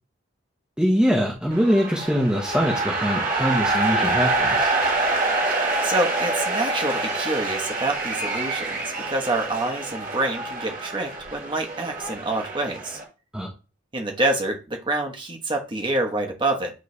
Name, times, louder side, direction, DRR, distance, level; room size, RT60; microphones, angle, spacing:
voice 1, 0.8-4.7 13.3-13.5, equal, 5° right, -2 dB, 0.9 m, -23 dB
sound 1, 1.5-13.0, right 2 dB, 40° right, 1.8 m, -26 dB
voice 2, 5.8-13.0 13.9-16.7, right 2 dB, 25° right, 2 dB, 1.2 m, -27 dB
9.4 x 3.3 x 3.3 m, 0.32 s
head